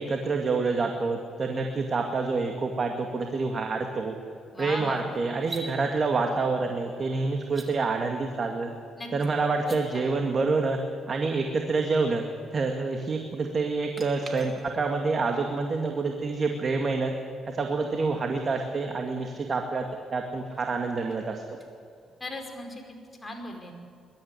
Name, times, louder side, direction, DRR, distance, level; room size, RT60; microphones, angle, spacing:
voice 1, 0.0-4.2 4.6-8.7 9.1-10.8 11.1-12.2 12.5-17.1 17.5-19.8 20.1-21.4, right 4 dB, 45° right, 3 dB, 2.2 m, -27 dB
voice 2, 4.5-5.2 9.0-9.1 9.7-10.1 22.2-22.8 23.2-23.7, left 2 dB, 20° left, 2 dB, 5.0 m, -37 dB
sound 1, 5.3-5.7 7.4-7.7 9.5-9.8 13.9-15.0 18.2-18.3 20.2-22.4, right 2 dB, 25° right, 3.5 m, -45 dB
21.5 x 13.0 x 9.9 m, 2.5 s
cardioid pair, 90°, 0 cm